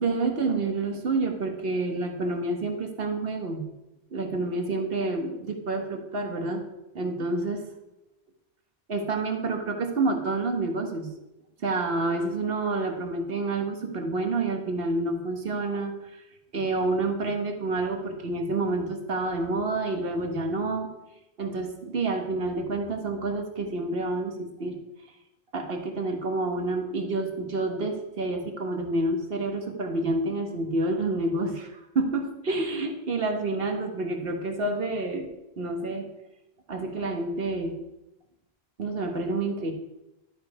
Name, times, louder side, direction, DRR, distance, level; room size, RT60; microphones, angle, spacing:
voice 1, 0.0-3.6 4.1-6.6 6.9-7.7 8.9-11.1 11.6-16.2 16.5-20.9 21.4-24.8 25.5-35.2 35.6-36.1 36.7-37.7 38.8-39.7, right 2 dB, 65° right, 4 dB, 1.4 m, -28 dB
11.5 x 5.3 x 4.7 m, 0.91 s
omnidirectional pair, 1.1 m